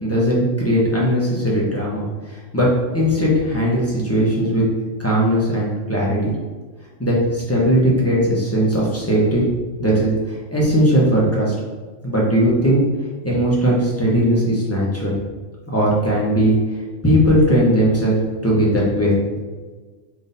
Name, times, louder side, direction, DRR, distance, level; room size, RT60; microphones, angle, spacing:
voice 1, 0.0-2.1 2.5-2.7 2.9-4.6 5.0-6.3 7.0-9.5 9.8-11.5 12.0-12.8 13.2-15.1 15.7-16.5 17.0-18.1 18.4-19.2, equal, 15° left, -5 dB, 0.6 m, -18 dB
3.6 x 2.6 x 4.0 m, 1.3 s
omnidirectional pair, 1.4 m